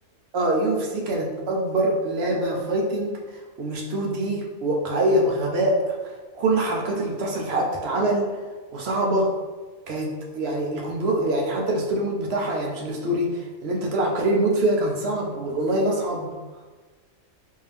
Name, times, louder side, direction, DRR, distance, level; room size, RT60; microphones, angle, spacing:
voice 1, 0.3-8.4 8.7-9.3 9.9-16.3, right 1 dB, 60° right, -1 dB, 0.7 m, -24 dB
3.5 x 2.7 x 3.3 m, 1.3 s
omnidirectional pair, 1.5 m